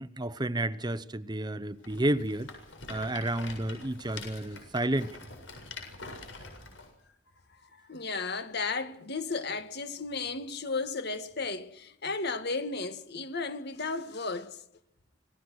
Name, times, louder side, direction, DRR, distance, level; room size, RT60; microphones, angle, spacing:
voice 1, 0.0-2.5 2.9-5.1, right 1 dB, 25° right, 0.9 m, -31 dB
Rattle, 1.8-6.9, left 3 dB, 80° left, 7.5 m, -45 dB
voice 2, 7.7-14.6, left 4 dB, 60° left, 2.0 m, -34 dB
26.5 x 20.0 x 6.4 m
head